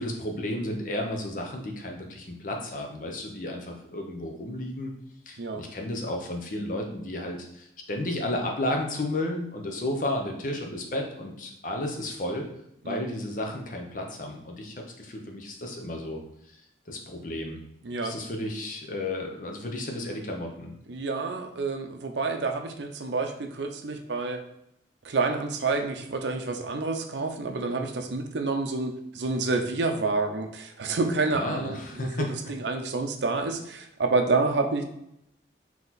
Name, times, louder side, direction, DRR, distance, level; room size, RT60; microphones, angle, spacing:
voice 1, 0.0-4.9 5.3-12.5 12.8-16.2 16.5-16.6 16.9-17.6 18.0-20.7 31.3-32.5, left 1 dB, 45° left, 2 dB, 0.7 m, -33 dB
voice 2, 17.8-18.2 20.9-24.4 25.0-32.1 32.5-34.8, right 3 dB, 75° right, 5 dB, 0.5 m, -28 dB
4.0 x 2.9 x 4.0 m, 0.78 s
head